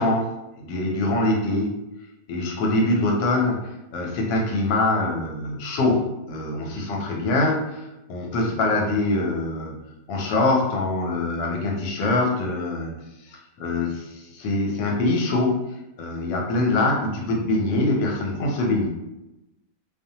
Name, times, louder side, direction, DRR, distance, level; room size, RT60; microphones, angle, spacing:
voice 1, 0.0-1.8 2.3-9.7 10.1-12.9 13.3-18.9, left 2 dB, 85° left, 0 dB, 1.3 m, -24 dB
2.9 x 2.1 x 2.7 m, 0.93 s
omnidirectional pair, 1.9 m